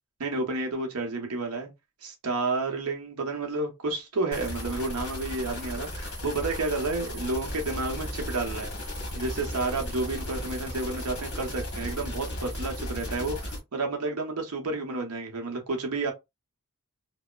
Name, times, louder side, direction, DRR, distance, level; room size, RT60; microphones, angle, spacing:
voice 1, 0.2-1.7 2.0-8.7 9.1-16.1, right 3 dB, 80° right, 0.8 m, -31 dB
sound 1, 4.3-13.6, left 1 dB, 55° left, 1.3 m, -35 dB
2.9 x 2.0 x 2.3 m
head